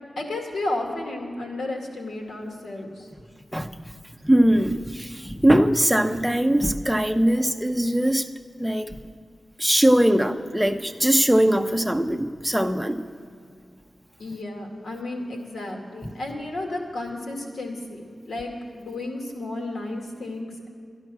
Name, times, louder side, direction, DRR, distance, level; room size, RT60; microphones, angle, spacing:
voice 1, 0.2-3.1 7.4-7.5 14.2-20.7, left 2 dB, 80° left, 1 dB, 2.1 m, -33 dB
voice 2, 4.2-8.3 8.6-8.9 9.6-13.0, right 1 dB, 5° right, 6 dB, 0.7 m, -21 dB
12.5 x 11.0 x 6.1 m, 2.2 s
wide cardioid pair, 80°, 0 cm